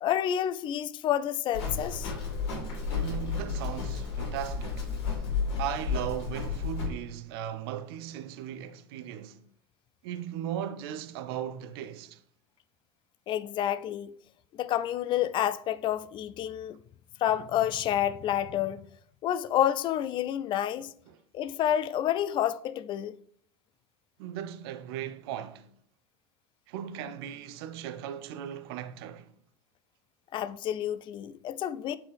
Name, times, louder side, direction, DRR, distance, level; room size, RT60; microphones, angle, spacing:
voice 1, 0.0-2.1 13.3-14.2 14.6-16.8 17.2-18.8 19.2-20.9 21.3-23.2 30.3-32.0, left 11 dB, 35° left, 0.4 m, -29 dB
Livestock farm animals working animals, 1.5-6.9, left 5 dB, 60° left, 2.6 m, -32 dB
voice 2, 2.9-4.9 5.6-9.4 10.0-12.2 21.1-21.2 24.2-25.7 26.7-29.3, right 10 dB, 60° right, 0.6 m, -37 dB
7.7 x 4.2 x 3.4 m
figure-of-eight pair, 80°, 15 cm